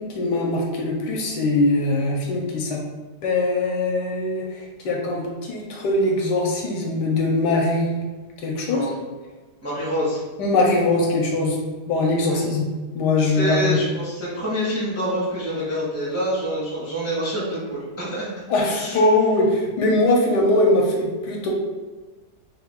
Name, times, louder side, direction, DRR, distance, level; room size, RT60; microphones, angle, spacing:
voice 1, 0.0-2.8 3.2-8.0 8.4-8.8 10.4-11.6 11.9-12.7 12.9-13.8 18.5-21.5, left 2 dB, 75° left, -1 dB, 1.2 m, -21 dB
voice 2, 9.6-10.2 12.2-12.4 13.2-18.3 18.6-19.0, equal, 15° right, -8 dB, 0.5 m, -26 dB
3.2 x 2.3 x 3.5 m, 1.3 s
omnidirectional pair, 1.9 m